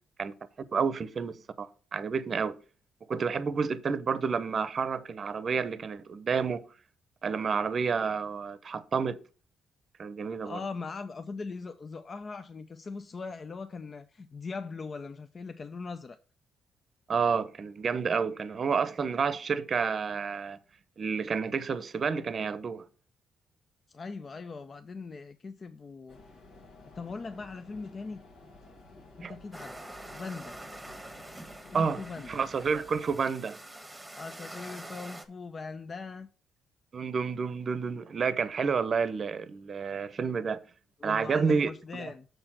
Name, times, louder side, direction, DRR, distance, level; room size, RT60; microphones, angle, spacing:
voice 1, 0.7-2.6 3.1-6.6 7.2-9.2 10.0-10.6 17.1-20.6 21.0-22.8 29.2-29.3 31.7-33.6 36.9-40.6 41.0-42.1, right 5 dB, 45° right, 0.7 m, -30 dB
voice 2, 10.4-16.2 23.9-26.2 26.9-28.2 29.2-30.6 31.7-32.4 34.2-36.3 41.0-42.3, left 4 dB, 40° left, 0.5 m, -40 dB
sound 1, 26.1-33.2, left 2 dB, 80° left, 1.9 m, -53 dB
sound 2, 29.5-35.2, right 1 dB, 5° right, 1.1 m, -46 dB
6.6 x 4.4 x 5.7 m
cardioid pair, 90°, 0 cm